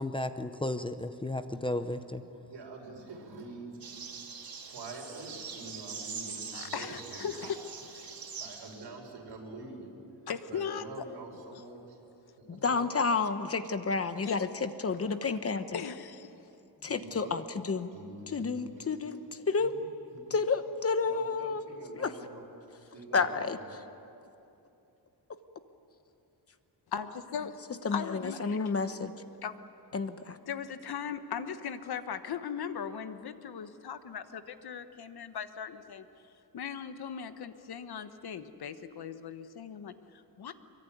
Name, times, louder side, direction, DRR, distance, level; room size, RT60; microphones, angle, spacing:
voice 1, 0.0-2.2, left 1 dB, 10° left, 9 dB, 0.7 m, -34 dB
voice 2, 2.5-3.8 4.6-7.5 8.4-10.0 10.5-12.0 12.4-13.0 16.9-17.4 17.9-18.9 19.6-20.4 21.1-22.4 22.9-23.7, right 3 dB, 85° right, 0 dB, 5.7 m, -46 dB
sound 1, 3.8-8.9, right 5 dB, 55° right, 2.8 m, -43 dB
voice 3, 6.5-7.6 8.0-8.1 10.3-11.0 14.2-14.5 15.7-16.3 26.9-27.6 27.9-28.6 29.4-29.5 30.5-36.0 36.5-40.5, left 7 dB, 65° left, 10 dB, 1.2 m, -38 dB
voice 4, 12.5-15.8 16.8-17.9 18.3-19.8 20.3-22.1 23.1-23.8 27.8-29.1 29.9-30.4, left 4 dB, 35° left, 10 dB, 1.0 m, -31 dB
24.5 x 23.0 x 9.3 m, 2.8 s
wide cardioid pair, 175°, 42 cm